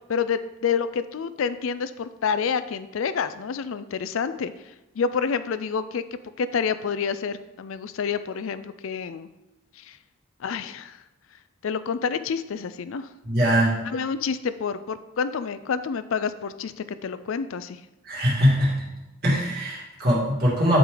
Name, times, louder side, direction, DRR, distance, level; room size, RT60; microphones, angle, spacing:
voice 1, 0.1-4.5 5.0-9.3 9.8-10.0 10.4-11.0 11.6-13.1 13.9-17.8, left 6 dB, 75° left, 13 dB, 0.4 m, -28 dB
voice 2, 13.2-13.8 18.1-18.9 19.2-20.8, equal, 45° right, -5 dB, 2.5 m, -21 dB
11.0 x 5.0 x 3.9 m, 0.98 s
head